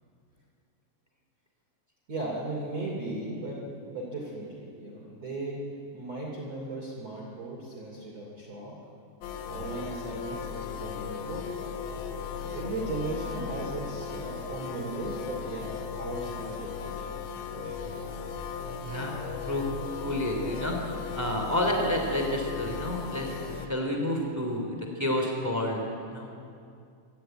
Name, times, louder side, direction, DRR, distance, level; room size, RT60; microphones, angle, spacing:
voice 1, 2.1-5.6 5.9-8.7 9.5-11.6 12.3-16.9 17.6-18.0 21.2-21.3, right 2 dB, 40° right, -4 dB, 3.6 m, -37 dB
sound 1, 9.2-23.7, left 6 dB, 75° left, 3.3 m, -37 dB
voice 2, 18.8-19.1 19.5-19.7 20.0-20.8 21.1-25.8 26.1-26.3, left 1 dB, 5° right, 2 dB, 1.7 m, -29 dB
24.5 x 14.0 x 9.1 m, 2.4 s
omnidirectional pair, 5.4 m